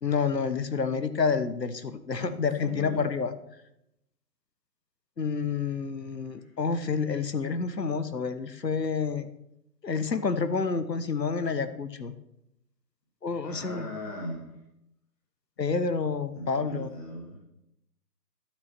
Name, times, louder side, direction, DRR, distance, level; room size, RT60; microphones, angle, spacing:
voice 1, 0.0-3.3 5.2-9.3 9.8-12.1 13.2-13.9 15.6-16.9, left 5 dB, 75° left, 12 dB, 1.2 m, -29 dB
voice 2, 2.2-3.0 6.3-6.5 7.2-7.3 13.4-14.6 16.3-17.4, equal, 20° left, -3 dB, 2.4 m, -39 dB
12.0 x 6.2 x 6.0 m, 0.81 s
figure-of-eight pair, 155°, 50 cm